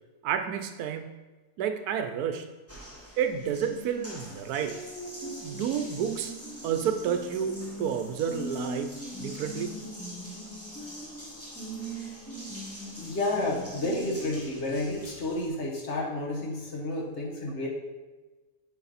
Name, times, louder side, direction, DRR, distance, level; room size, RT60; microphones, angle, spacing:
voice 1, 0.2-1.1 1.6-2.5 3.2-4.7 5.4-6.3 6.6-9.9, right 8 dB, 90° right, 8 dB, 1.2 m, -30 dB
Water tap faucet, 2.7-15.5, equal, 10° left, 1.2 m, -41 dB
voice 2, 13.0-17.7, left 2 dB, 50° left, -2 dB, 1.4 m, -31 dB
6.8 x 5.0 x 4.1 m, 1.2 s
omnidirectional pair, 1.6 m